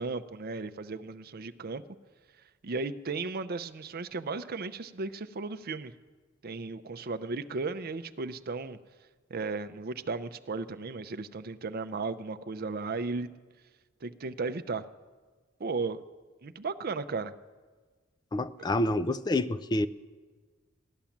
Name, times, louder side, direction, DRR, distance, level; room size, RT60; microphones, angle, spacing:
voice 1, 0.0-1.8 2.6-5.9 6.4-8.8 9.3-13.3 14.0-14.8 15.6-16.0 16.4-17.3, right 4 dB, 50° right, 0.6 m, -35 dB
voice 2, 18.3-19.9, left 1 dB, 20° left, 0.4 m, -28 dB
15.5 x 10.5 x 7.2 m
head